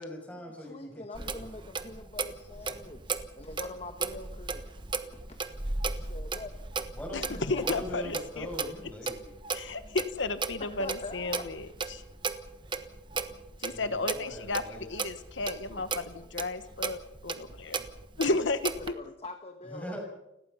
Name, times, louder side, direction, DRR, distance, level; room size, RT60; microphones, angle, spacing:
voice 1, 0.0-1.7 6.9-9.3 13.7-14.9 17.7-17.9 19.6-20.0, left 1 dB, 5° left, 1 dB, 6.8 m, -42 dB
voice 2, 0.6-3.0 3.3-4.6 5.1-5.4 5.8-6.5 7.3-7.6 10.6-11.5 15.9-16.5 18.8-20.0, left 2 dB, 35° left, 6 dB, 1.3 m, -44 dB
Clock, 1.1-18.9, right 4 dB, 25° right, 1.3 m, -36 dB
voice 3, 7.1-8.5 9.5-12.0 13.6-17.8 18.2-19.0, left 3 dB, 85° left, 11 dB, 1.2 m, -33 dB
30.0 x 17.5 x 5.6 m, 0.87 s
head